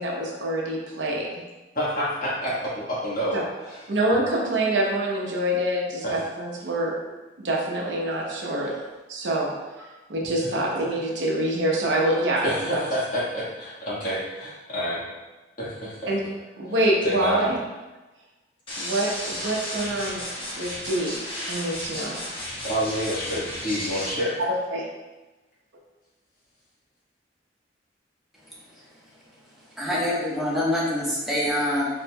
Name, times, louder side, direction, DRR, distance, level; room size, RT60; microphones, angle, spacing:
voice 1, 0.0-1.3 3.3-3.4 3.9-7.0 7.4-8.7 9.1-12.5 16.1-16.2 16.6-17.5 18.8-21.2 21.5-22.2 24.4-24.9, right 1 dB, 85° right, -1 dB, 0.8 m, -26 dB
voice 2, 1.7-3.9 6.0-6.2 8.6-8.8 10.4-10.5 12.4-15.0 15.6-16.1 16.6-17.5 22.6-24.4, equal, 45° left, -7 dB, 1.5 m, -29 dB
sound 1, 18.7-24.1, left 1 dB, 30° left, 1.1 m, -33 dB
voice 3, 29.8-31.9, left 1 dB, ahead, -7 dB, 1.0 m, -25 dB
4.3 x 4.2 x 2.2 m, 1.1 s
head